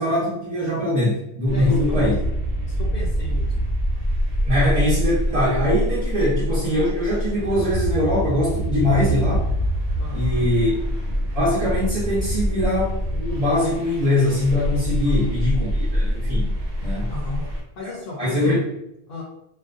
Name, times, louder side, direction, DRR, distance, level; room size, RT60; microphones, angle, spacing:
voice 1, 0.0-2.1 4.4-9.5 10.1-10.7 11.3-16.5 16.8-17.2 18.2-18.6, left 1 dB, 40° right, -7 dB, 0.6 m, -22 dB
voice 2, 1.5-2.1 2.7-3.5 10.0-10.5 15.0-15.3 17.1-17.4 17.8-18.6 19.1-19.2, left 3 dB, 65° left, -3 dB, 0.7 m, -34 dB
sex astral, 1.5-17.6, equal, 75° right, 0.9 m, -25 dB
2.4 x 2.1 x 2.4 m, 0.82 s
omnidirectional pair, 1.1 m